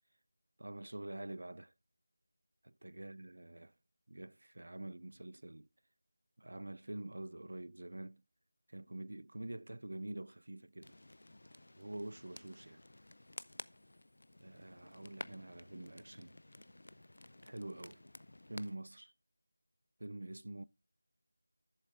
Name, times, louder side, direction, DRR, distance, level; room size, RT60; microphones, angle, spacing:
voice 1, 0.6-1.7 2.6-3.7 4.1-5.7 6.4-8.2 8.7-11.0 11.8-12.8 14.4-16.4 17.4-18.0 18.5-19.1 20.0-20.6, right 1 dB, 65° right, 0.4 m, -46 dB
sound 1, 10.8-18.8, left 1 dB, 65° left, 0.4 m, -53 dB
11.5 x 7.3 x 2.5 m
figure-of-eight pair, 170°, 0 cm